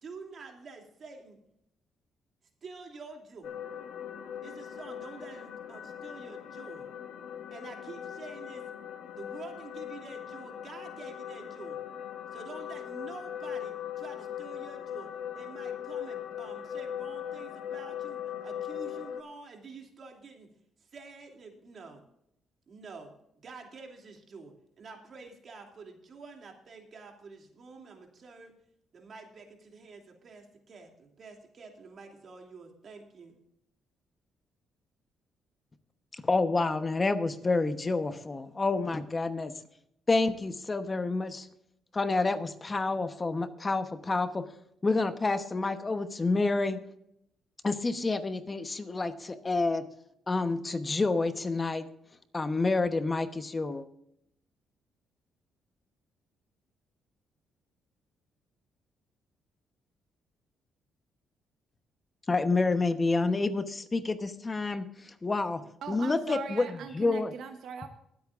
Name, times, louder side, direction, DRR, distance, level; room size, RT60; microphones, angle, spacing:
voice 1, 0.0-1.4 2.6-3.6 4.4-6.9 7.5-8.6 9.1-11.8 12.3-20.5 20.9-22.0 22.7-28.5 28.9-33.4, right 4 dB, 50° right, 2 dB, 2.7 m, -48 dB
sound 1, 3.4-19.2, left 9 dB, 75° left, 1.3 m, -40 dB
voice 2, 36.1-39.5 40.1-41.5 41.9-44.4 44.8-46.8 47.6-49.8 50.3-51.8 52.3-53.8 62.3-65.6 65.9-67.3, left 3 dB, 25° left, 9 dB, 1.0 m, -28 dB
voice 3, 65.8-67.9, right 6 dB, 70° right, 7 dB, 0.9 m, -40 dB
23.5 x 8.4 x 2.5 m, 0.75 s
cardioid pair, 90°, 0 cm